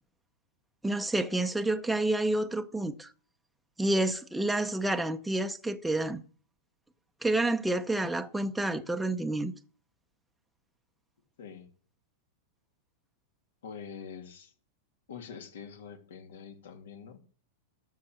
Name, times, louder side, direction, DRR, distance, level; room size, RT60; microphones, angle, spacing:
voice 1, 0.8-3.1 3.8-6.2 7.2-9.5, right 2 dB, 5° right, 0.6 m, -29 dB
voice 2, 13.6-14.5 15.1-17.2, left 6 dB, 85° left, 2.9 m, -45 dB
13.0 x 6.4 x 7.9 m
supercardioid pair, 160°, 0 cm